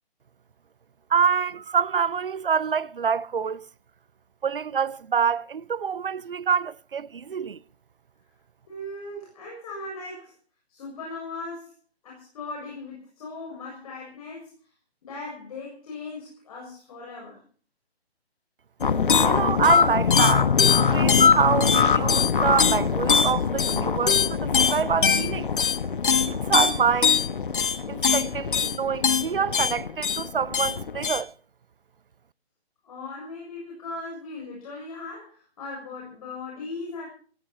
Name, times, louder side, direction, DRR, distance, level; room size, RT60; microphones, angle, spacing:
voice 1, 1.1-3.6 4.4-7.6 19.2-25.5 26.3-27.2 27.9-31.3, right 6 dB, 55° right, 0.7 m, -26 dB
voice 2, 8.7-10.3 10.7-11.7 12.0-14.5 15.0-17.4 32.8-37.1, left 3 dB, 35° left, 7.1 m, -38 dB
sound 1, 18.8-31.2, left 6 dB, 50° left, 1.2 m, -22 dB
18.0 x 17.0 x 4.4 m
figure-of-eight pair, 145°, 32 cm